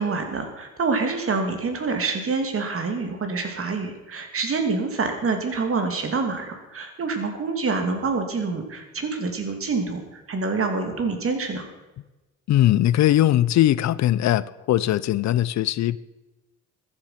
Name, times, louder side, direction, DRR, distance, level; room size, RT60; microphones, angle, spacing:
voice 1, 0.0-10.0 10.3-11.6, right 4 dB, 45° right, 2.8 m, -26 dB
voice 2, 12.5-16.0, left 13 dB, 65° left, 0.5 m, -20 dB
14.5 x 10.5 x 5.9 m
cardioid pair, 90°, 30 cm